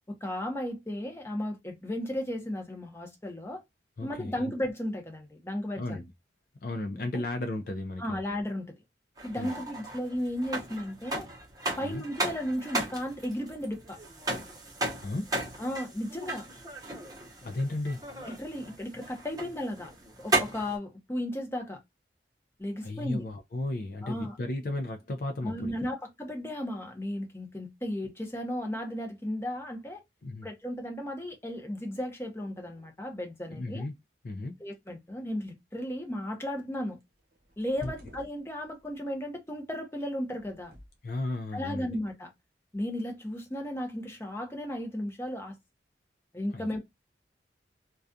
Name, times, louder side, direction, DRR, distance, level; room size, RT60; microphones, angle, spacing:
voice 1, 0.1-3.6 4.0-6.0 8.0-8.7 9.2-11.3 11.8-14.0 15.6-16.4 18.3-19.9 20.2-21.8 22.6-23.2 24.0-24.4 25.4-30.0 30.4-33.8 34.6-37.0 37.6-40.7 41.5-42.3 42.7-45.6 46.3-46.8, left 1 dB, 15° left, 0.7 m, -35 dB
voice 2, 4.0-4.5 5.8-6.1 6.6-8.2 9.4-9.5 11.8-12.0 15.0-15.3 17.4-18.0 22.8-25.8 30.2-30.5 33.5-33.9 34.2-34.6 37.8-37.9 41.0-42.0 46.5-46.8, left 2 dB, 50° left, 0.4 m, -34 dB
sound 1, 9.2-20.8, right 2 dB, 20° right, 0.8 m, -35 dB
sound 2, 37.0-39.0 40.2-41.3, equal, 50° right, 0.8 m, -50 dB
2.3 x 2.3 x 2.5 m
head